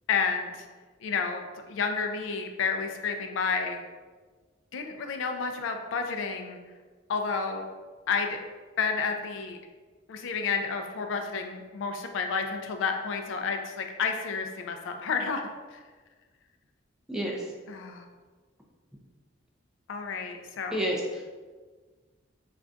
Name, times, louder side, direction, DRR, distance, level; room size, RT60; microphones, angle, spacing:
voice 1, 0.1-0.6 1.0-3.8 4.7-6.6 7.1-7.6 8.1-8.4 8.8-9.6 10.1-15.4 15.7-15.8 17.7-18.1 19.9-20.7, left 5 dB, 80° left, 5 dB, 0.3 m, -30 dB
voice 2, 17.1-17.5 20.7-21.2, equal, 5° right, -2 dB, 0.3 m, -30 dB
2.4 x 2.2 x 3.7 m, 1.4 s
head